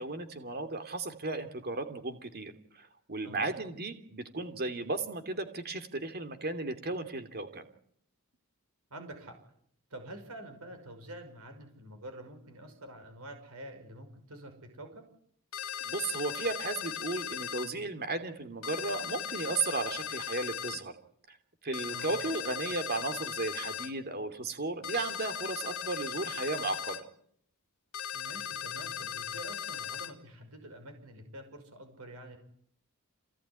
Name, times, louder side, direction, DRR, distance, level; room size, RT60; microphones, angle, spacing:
voice 1, 0.0-7.6 15.9-20.9 21.3-21.4 21.6-27.0, right 3 dB, 45° right, 9 dB, 2.9 m, -35 dB
voice 2, 8.9-9.4 9.9-15.1 21.9-22.1 28.1-32.4, right 1 dB, 70° right, 6 dB, 5.8 m, -47 dB
sound 1, 15.5-17.7 18.6-20.8 21.7-23.9 24.8-27.0 27.9-30.1, left 9 dB, 65° left, 2.8 m, -38 dB
27.0 x 18.5 x 9.9 m, 0.67 s
head